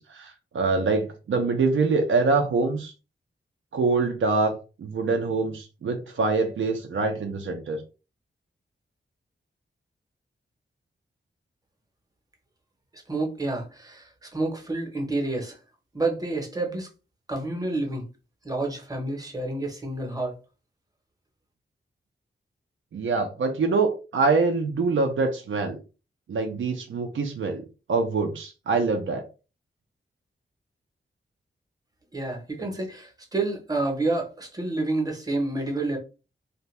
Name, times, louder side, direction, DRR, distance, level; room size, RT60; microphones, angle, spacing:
voice 1, 0.0-2.9 3.7-4.5 4.8-7.8 22.9-25.8 26.3-29.2, right 3 dB, 80° right, 4 dB, 0.5 m, -25 dB
voice 2, 12.9-15.6 15.9-16.9 17.3-18.1 18.4-20.3 32.1-36.0, right 2 dB, 20° right, 1 dB, 0.7 m, -29 dB
2.6 x 2.1 x 3.1 m, 0.32 s
wide cardioid pair, 150°, 20 cm